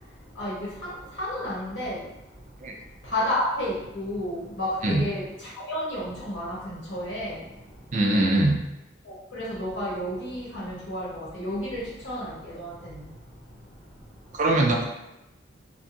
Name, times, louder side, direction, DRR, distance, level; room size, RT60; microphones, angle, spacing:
voice 1, 1.2-2.0 3.1-5.2 5.7-7.4 9.3-12.7, left 1 dB, 80° left, -8 dB, 1.0 m, -31 dB
voice 2, 7.9-8.6 14.3-14.8, right 1 dB, 40° right, 1 dB, 0.4 m, -22 dB
2.6 x 2.3 x 2.5 m, 0.93 s
head